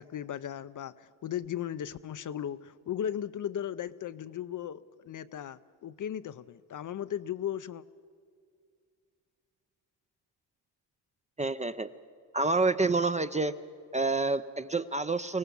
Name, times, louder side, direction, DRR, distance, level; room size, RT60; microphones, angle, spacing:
voice 1, 0.0-7.8, left 10 dB, 45° left, 14 dB, 0.6 m, -36 dB
voice 2, 11.4-11.9 12.3-13.5 13.9-15.4, right 3 dB, 15° right, 11 dB, 0.5 m, -28 dB
24.0 x 17.5 x 7.1 m, 2.2 s
cardioid pair, 80°, 45 cm